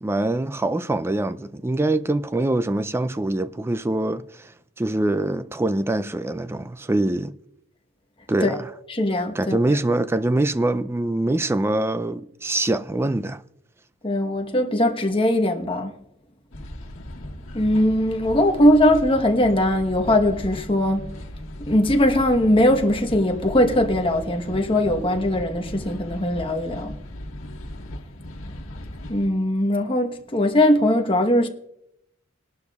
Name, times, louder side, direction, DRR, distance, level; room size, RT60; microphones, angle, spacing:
voice 1, 0.0-7.3 8.3-8.7 9.3-13.4, right 2 dB, 10° right, 0.4 m, -24 dB
voice 2, 8.9-9.6 14.0-16.0 17.5-21.1 21.7-26.9 29.1-31.5, left 1 dB, 25° left, 1.1 m, -20 dB
sound 1, 16.5-29.3, left 1 dB, 80° left, 1.6 m, -37 dB
21.5 x 11.5 x 2.4 m
head